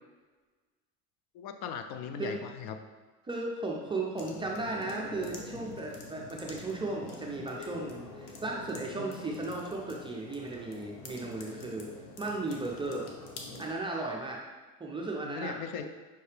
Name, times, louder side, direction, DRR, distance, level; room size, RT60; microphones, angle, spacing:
voice 1, 1.3-2.8 15.2-15.9, left 7 dB, 60° left, 7 dB, 0.5 m, -38 dB
voice 2, 3.2-11.9 12.2-13.1 13.6-14.4 14.8-15.9, right 2 dB, 15° right, -2 dB, 0.4 m, -35 dB
sound 1, 4.2-13.7, left 2 dB, 80° left, 0.9 m, -45 dB
5.7 x 2.7 x 3.2 m, 1.3 s
supercardioid pair, 110°, 42 cm